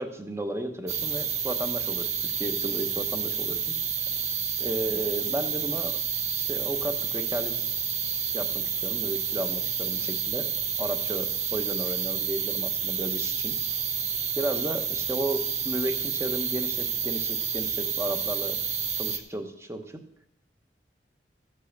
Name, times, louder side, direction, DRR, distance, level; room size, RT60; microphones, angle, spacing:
voice 1, 0.0-3.8 4.6-6.0 6.4-7.7 8.3-10.5 10.8-13.5 14.4-18.6 18.9-20.0, right 1 dB, 15° right, 6 dB, 1.0 m, -34 dB
sound 1, 0.9-19.2, right 7 dB, 40° right, 0.9 m, -29 dB
14.0 x 5.5 x 6.6 m, 0.83 s
head